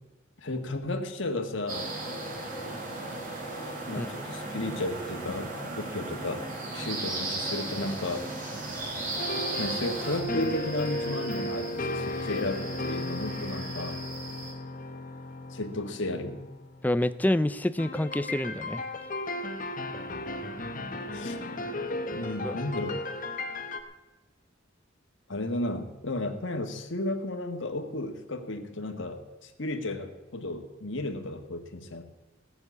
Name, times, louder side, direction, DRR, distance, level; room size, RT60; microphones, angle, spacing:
voice 1, 0.4-1.9 3.9-6.4 6.7-8.3 9.6-14.0 15.5-16.4 21.1-21.4 22.1-23.0 25.3-32.0, left 2 dB, 65° left, 5 dB, 1.7 m, -33 dB
sound 1, 1.7-10.2, right 2 dB, 45° right, 4.2 m, -35 dB
sound 2, 8.6-14.5, right 3 dB, 60° right, 4.1 m, -43 dB
sound 3, 9.2-16.9 17.8-23.8, left 1 dB, 40° left, 1.3 m, -35 dB
voice 2, 16.8-18.8 22.4-22.5, left 1 dB, 10° left, 13 dB, 0.5 m, -27 dB
17.5 x 6.9 x 8.3 m, 1.1 s
head